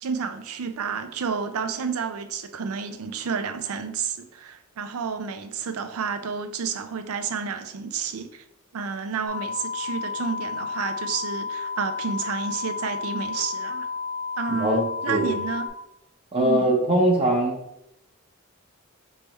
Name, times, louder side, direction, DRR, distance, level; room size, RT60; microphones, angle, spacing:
voice 1, 0.0-8.4 8.7-13.9 14.4-15.7 16.4-16.7, right 5 dB, 80° right, 0.5 m, -30 dB
sound 1, 9.3-15.7, left 5 dB, 50° left, 0.9 m, -32 dB
voice 2, 14.5-14.8 15.1-15.3 16.3-17.6, right 1 dB, 30° right, 0.8 m, -21 dB
3.4 x 3.3 x 4.1 m
head